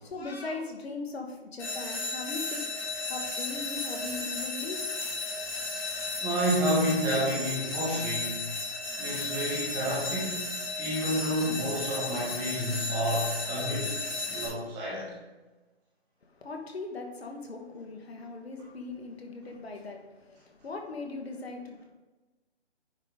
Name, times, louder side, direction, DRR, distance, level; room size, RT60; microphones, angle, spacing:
voice 1, 0.0-2.6 3.1-4.8 16.2-21.8, left 3 dB, 65° left, 3 dB, 1.5 m, -39 dB
sound 1, 1.6-14.5, left 3 dB, 5° left, 0.8 m, -34 dB
voice 2, 6.2-8.5 9.0-14.0 14.3-15.1, equal, 10° right, -6 dB, 1.2 m, -30 dB
9.5 x 3.9 x 3.6 m, 1.2 s
hypercardioid pair, 155°, 33 cm